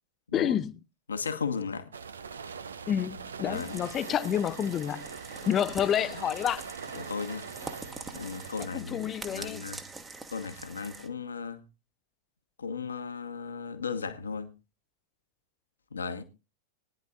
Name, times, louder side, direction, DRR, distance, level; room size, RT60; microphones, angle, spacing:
voice 1, 0.3-0.7 2.9-5.1 5.5-6.7 8.6-9.7, left 9 dB, 30° left, 0.6 m, -29 dB
voice 2, 1.1-1.9 3.5-3.8 6.9-7.5 8.1-9.8 10.3-11.6 12.6-14.5 15.9-16.2, left 5 dB, 75° left, 1.4 m, -35 dB
sound 1, 1.9-8.7, right 6 dB, 70° right, 0.7 m, -42 dB
sound 2, 3.5-11.1, right 3 dB, 15° right, 1.3 m, -45 dB
21.0 x 10.5 x 2.4 m
figure-of-eight pair, 90°, 0 cm